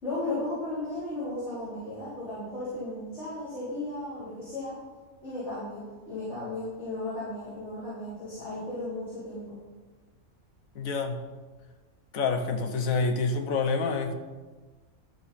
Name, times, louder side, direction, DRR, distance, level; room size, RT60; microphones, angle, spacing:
voice 1, 0.0-4.7 5.2-5.8 6.1-9.6, left 2 dB, 50° left, -11 dB, 3.5 m, -35 dB
voice 2, 10.7-11.2 12.1-14.1, left 4 dB, 70° left, 6 dB, 1.3 m, -27 dB
12.0 x 6.4 x 4.2 m, 1.3 s
omnidirectional pair, 1.5 m